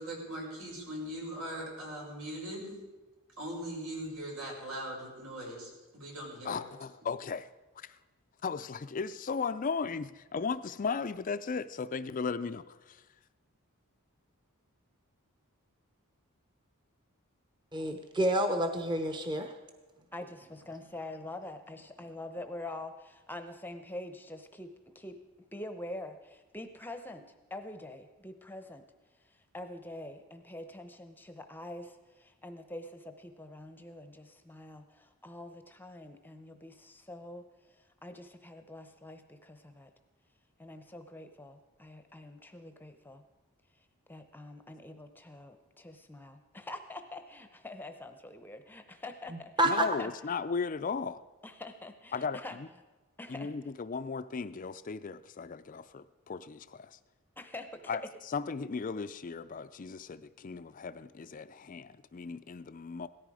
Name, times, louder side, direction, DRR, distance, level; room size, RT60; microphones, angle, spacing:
voice 1, 0.0-2.9 3.4-6.6, right 1 dB, 80° right, -2 dB, 5.7 m, -40 dB
voice 2, 6.4-7.5 7.8-8.0 8.4-13.0 49.6-51.2 52.1-52.7 53.3-57.0 57.9-58.0 58.3-63.1, left 5 dB, 35° left, 13 dB, 0.4 m, -36 dB
voice 3, 17.7-19.6 49.6-49.9, right 1 dB, 20° right, 5 dB, 0.9 m, -28 dB
voice 4, 20.1-25.2 25.5-28.8 29.2-39.9 40.6-43.2 44.1-50.1 51.4-52.6 53.2-53.5 57.4-57.8, left 1 dB, 10° left, 8 dB, 0.7 m, -45 dB
17.5 x 14.0 x 4.9 m, 1.2 s
head